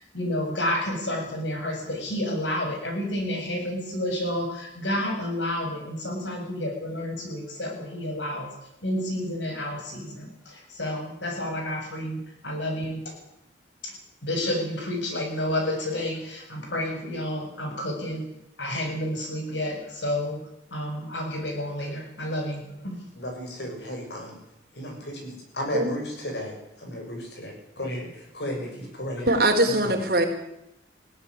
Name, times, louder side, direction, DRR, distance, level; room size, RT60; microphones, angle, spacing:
voice 1, 0.0-8.5 8.8-13.1 13.8-13.9 14.2-18.2 18.6-20.4 20.7-23.0, left 1 dB, 80° left, 2 dB, 7.3 m, -30 dB
voice 2, 23.2-24.4 24.7-29.3 29.6-30.0, equal, 65° left, 2 dB, 7.3 m, -34 dB
voice 3, 29.3-30.2, right 1 dB, 55° right, 3 dB, 4.4 m, -21 dB
19.5 x 16.5 x 9.8 m, 0.83 s
head